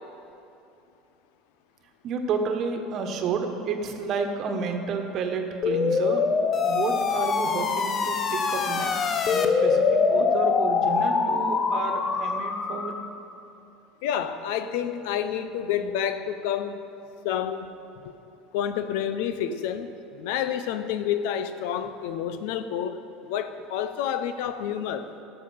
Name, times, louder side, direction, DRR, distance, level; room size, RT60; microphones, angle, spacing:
voice 1, 2.0-6.3 6.6-13.0 19.5-19.6, right 5 dB, 50° right, 5 dB, 1.2 m, -30 dB
sound 1, 5.6-13.1, left 5 dB, 40° left, 0.8 m, -24 dB
voice 2, 14.0-16.8 17.2-17.7 18.5-25.1, left 9 dB, 70° left, 11 dB, 0.6 m, -29 dB
12.5 x 6.9 x 5.7 m, 2.8 s
hypercardioid pair, 85°, 0 cm